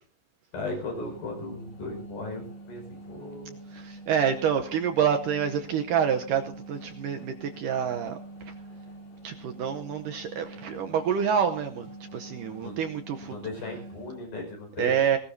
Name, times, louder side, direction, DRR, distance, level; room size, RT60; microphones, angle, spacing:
voice 1, 0.5-3.6 12.6-12.8 13.2-14.9, left 2 dB, 65° left, 2 dB, 7.2 m, -37 dB
sound 1, 0.7-14.3, right 1 dB, 45° left, 4.1 m, -45 dB
voice 2, 3.7-8.2 9.2-13.3 14.8-15.2, right 8 dB, 75° right, 5 dB, 2.1 m, -27 dB
19.5 x 18.5 x 2.7 m, 0.41 s
omnidirectional pair, 4.6 m